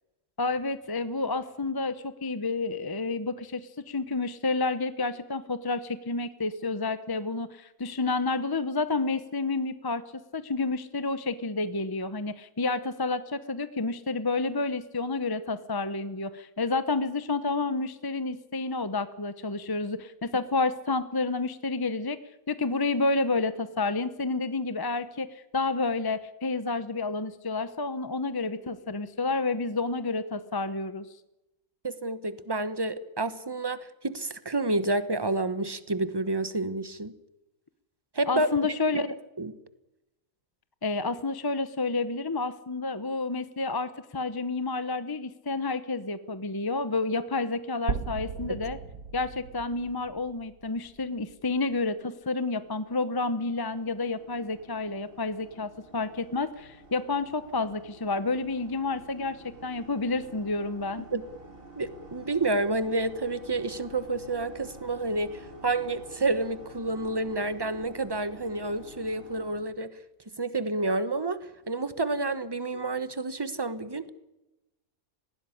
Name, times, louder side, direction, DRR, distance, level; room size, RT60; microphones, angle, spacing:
voice 1, 0.4-22.2 22.5-31.1 38.3-39.2 40.8-48.8 49.1-61.1, left 3 dB, 25° left, 0.6 m, -30 dB
voice 2, 31.8-37.1 38.1-38.5 39.4-39.5 48.5-48.6 61.1-61.2 61.8-70.0 70.4-71.4 71.7-74.1, right 2 dB, 20° right, 1.1 m, -29 dB
sound 1, 47.9-51.8, right 5 dB, 70° right, 1.7 m, -37 dB
sound 2, 52.1-69.6, right 2 dB, 35° right, 4.3 m, -50 dB
20.0 x 16.0 x 9.9 m
omnidirectional pair, 1.6 m